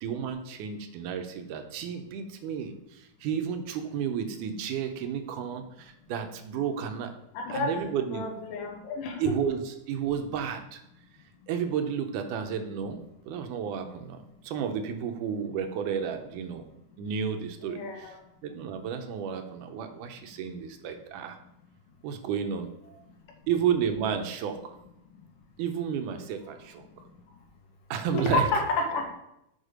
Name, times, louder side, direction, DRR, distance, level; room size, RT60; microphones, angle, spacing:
voice 1, 0.0-7.1 7.5-8.3 9.2-10.8 11.5-13.0 13.3-16.6 17.0-21.4 22.0-22.7 23.5-24.8 25.6-26.8 27.9-28.5, right 7 dB, 80° right, 7 dB, 2.2 m, -32 dB
voice 2, 7.3-7.8 8.1-9.3 17.6-18.2 28.1-29.1, left 3 dB, 85° left, 3 dB, 2.7 m, -30 dB
6.5 x 4.8 x 5.0 m, 0.82 s
omnidirectional pair, 3.7 m